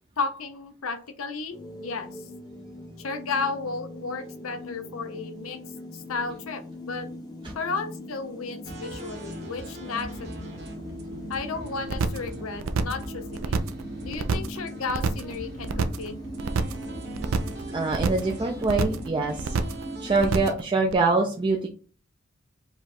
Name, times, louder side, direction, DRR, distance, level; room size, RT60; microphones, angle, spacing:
voice 1, 0.2-2.1 3.0-5.6 5.9-7.1 7.5-10.3 11.3-13.6 14.0-16.1, left 4 dB, 85° left, 9 dB, 0.7 m, -33 dB
sound 1, 1.5-20.5, equal, 20° left, 0.7 m, -40 dB
sound 2, 8.6-20.5, right 1 dB, 55° right, 1.2 m, -41 dB
sound 3, 11.9-12.3 12.6-13.0 13.3-13.8 14.1-14.6 14.9-15.3 15.6-16.1 16.4-16.8 17.1-17.6 17.9-18.3 18.6-19.1 19.4-19.8 20.1-20.6 20.9-21.0, right 4 dB, 80° right, 0.4 m, -27 dB
voice 2, 17.7-19.5 20.0-21.7, right 3 dB, 25° right, 1 dB, 0.4 m, -24 dB
5.0 x 2.3 x 4.1 m, 0.38 s
head